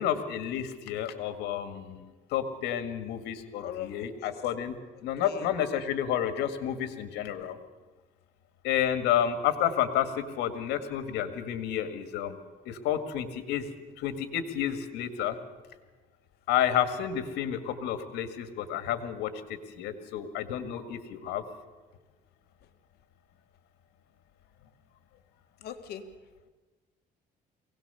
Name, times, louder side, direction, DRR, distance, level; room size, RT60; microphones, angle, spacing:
voice 1, 0.0-4.8 5.0-7.6 8.6-13.7 14.0-15.4 16.5-21.4, left 10 dB, 90° left, 8 dB, 1.9 m, -30 dB
voice 2, 3.6-4.3 5.2-5.5 25.6-26.1, left 10 dB, 70° left, 7 dB, 1.8 m, -40 dB
23.0 x 18.0 x 6.9 m, 1.3 s
cardioid pair, 110°, 17 cm